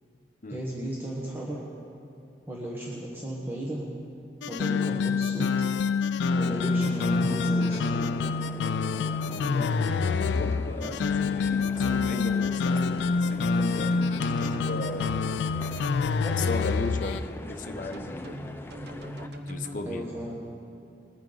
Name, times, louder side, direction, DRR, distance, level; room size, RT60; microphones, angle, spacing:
voice 1, 0.5-1.6 2.5-3.8 4.5-5.5 6.3-7.9 19.9-20.4, right 1 dB, 10° right, -4 dB, 1.1 m, -34 dB
sound 1, 4.4-17.2, left 4 dB, 80° left, 0.4 m, -27 dB
sound 2, 6.3-19.3, left 1 dB, 15° left, 0.6 m, -42 dB
voice 2, 9.3-15.1 16.3-18.8 19.5-20.1, left 2 dB, 45° left, 6 dB, 0.8 m, -37 dB
sound 3, 9.9-11.0 11.4-12.1 13.0-16.0 16.4-17.0 17.9-19.8, right 1 dB, 65° right, 0.9 m, -41 dB
21.0 x 9.1 x 3.9 m, 2.6 s
head